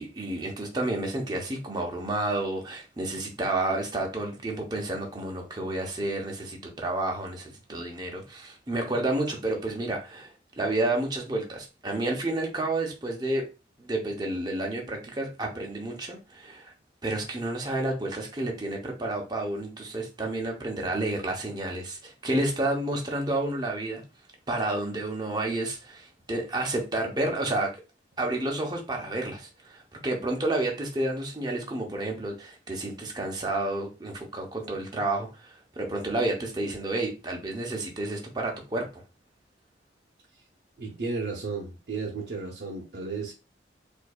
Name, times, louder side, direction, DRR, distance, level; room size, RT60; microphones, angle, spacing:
voice 1, 0.0-13.4 13.8-16.7 17.0-24.0 24.5-27.7 28.2-39.0, right 2 dB, 20° right, 0.7 m, -30 dB
voice 2, 40.8-43.3, right 4 dB, 60° right, 0.7 m, -33 dB
4.5 x 2.6 x 2.3 m
head